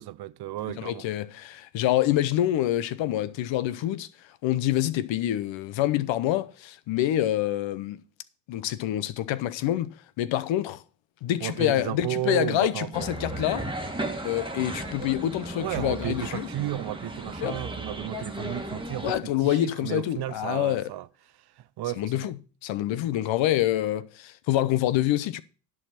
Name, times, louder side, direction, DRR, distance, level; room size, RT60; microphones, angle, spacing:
voice 1, 0.0-1.1 11.4-13.2 15.6-21.1 21.4-22.3, right 15 dB, 55° right, 0.6 m, -33 dB
voice 2, 0.8-4.1 4.4-8.0 8.5-10.8 11.2-13.7 14.2-16.5 17.4-17.6 19.0-20.9 22.0-22.4 22.6-25.4, left 13 dB, 65° left, 0.8 m, -26 dB
sound 1, 12.9-19.2, right 1 dB, 10° right, 1.5 m, -35 dB
11.0 x 4.9 x 5.8 m
supercardioid pair, 65°, 48 cm